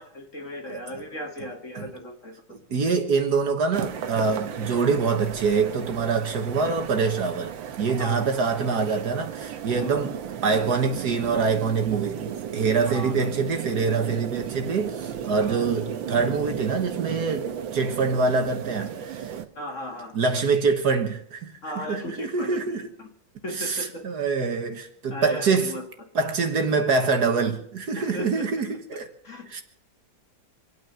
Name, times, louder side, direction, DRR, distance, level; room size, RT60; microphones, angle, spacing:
voice 1, 0.0-2.4 4.3-4.4 8.0-8.4 9.8-10.0 12.8-13.3 15.4-15.6 19.6-20.1 21.6-22.7 23.0-23.1 23.4-24.1 25.1-25.8 28.0-28.5 29.2-29.6, left 1 dB, 40° left, 2.3 m, -36 dB
voice 2, 2.5-10.1 10.4-19.4 20.1-22.9 23.5-25.7 26.2-29.1 29.5-29.6, right 4 dB, 60° right, 1.8 m, -25 dB
short train cross countryside + steps, 3.7-19.5, right 9 dB, 80° right, 1.7 m, -35 dB
26.0 x 9.3 x 5.7 m
omnidirectional pair, 2.1 m